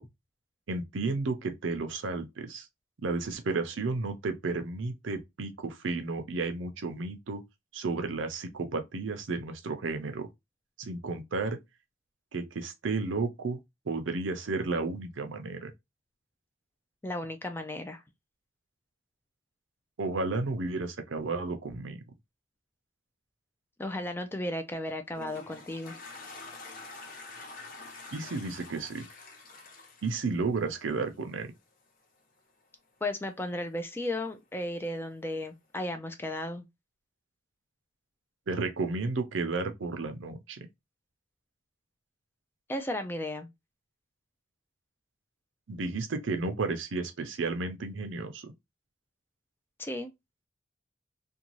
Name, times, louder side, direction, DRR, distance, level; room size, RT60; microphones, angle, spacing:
voice 1, 0.7-2.7 3.0-7.4 7.7-10.3 10.8-11.6 12.3-13.6 13.9-15.7 20.0-22.0 28.1-29.1 30.0-31.5 38.5-40.7 45.7-48.5, right 3 dB, 80° right, 0.6 m, -32 dB
voice 2, 17.0-18.0 23.8-25.9 33.0-36.6 42.7-43.5 49.8-50.1, left 1 dB, 10° left, 0.3 m, -34 dB
Toilet flush, 24.8-31.1, left 3 dB, 45° left, 0.7 m, -46 dB
2.6 x 2.3 x 2.9 m
head